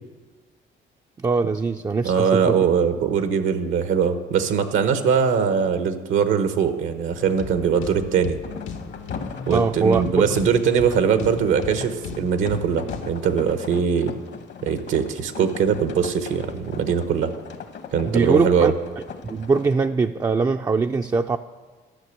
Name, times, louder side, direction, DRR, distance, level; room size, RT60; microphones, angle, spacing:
voice 1, 1.2-2.6 9.5-10.0 18.1-18.7 19.2-21.4, right 4 dB, 20° right, 6 dB, 0.3 m, -22 dB
voice 2, 2.0-8.4 9.5-14.1 14.6-17.3 17.9-18.7, right 7 dB, 80° right, 9 dB, 1.0 m, -21 dB
sound 1, 7.1-13.1, left 5 dB, 90° left, 1.3 m, -36 dB
sound 2, 8.4-19.9, left 6 dB, 60° left, 1.0 m, -39 dB
12.0 x 6.1 x 8.3 m, 1.4 s
cardioid pair, 90°, 20 cm